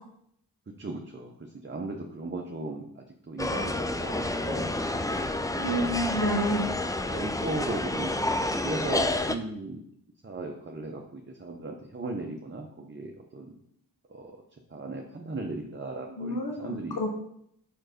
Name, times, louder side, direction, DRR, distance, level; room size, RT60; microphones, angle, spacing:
voice 1, 0.8-4.7 5.5-6.0 7.1-9.8 10.2-13.5 14.1-14.4 14.7-17.0, right 2 dB, 30° right, 1 dB, 0.8 m, -37 dB
sound 1, 3.4-9.4, left 2 dB, 10° left, 0.4 m, -29 dB
voice 2, 5.6-6.7 16.2-17.1, equal, 65° left, 2 dB, 1.1 m, -29 dB
4.7 x 4.4 x 5.2 m, 0.71 s
cardioid pair, 45°, 40 cm